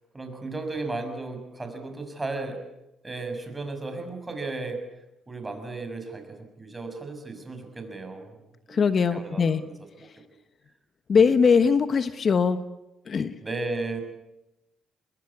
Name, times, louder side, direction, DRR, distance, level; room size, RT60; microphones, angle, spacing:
voice 1, 0.1-2.6 3.0-4.9 5.3-8.4 8.7-9.5 10.0-10.1 13.4-14.0, right 3 dB, 20° right, 7 dB, 6.5 m, -35 dB
voice 2, 8.7-9.6 11.1-12.6 13.1-13.3, left 5 dB, 45° left, 11 dB, 1.2 m, -21 dB
25.0 x 22.0 x 8.5 m, 0.90 s
cardioid pair, 90°, 0 cm